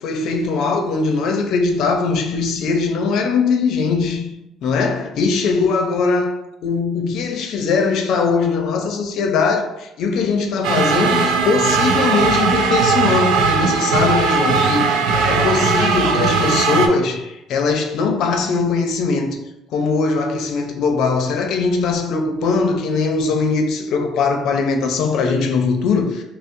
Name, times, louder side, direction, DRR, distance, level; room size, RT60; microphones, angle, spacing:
voice 1, 0.0-4.3 4.6-19.4 19.7-26.2, left 4 dB, 65° left, 0.5 m, -20 dB
sound 1, 10.6-16.9, right 5 dB, 85° right, 0.4 m, -18 dB
5.3 x 2.0 x 2.6 m
cardioid pair, 120°, 0 cm